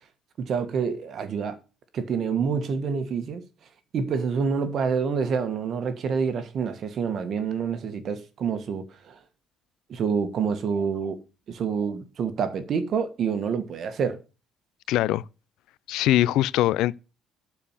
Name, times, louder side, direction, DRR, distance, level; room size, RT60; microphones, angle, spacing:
voice 1, 0.4-1.6 1.9-3.4 3.9-9.2 9.9-11.2 11.5-14.2, right 6 dB, 45° right, 1.5 m, -27 dB
voice 2, 14.9-15.2 15.9-16.9, left 14 dB, 80° left, 0.5 m, -22 dB
12.0 x 4.7 x 7.3 m
cardioid pair, 150°, 0 cm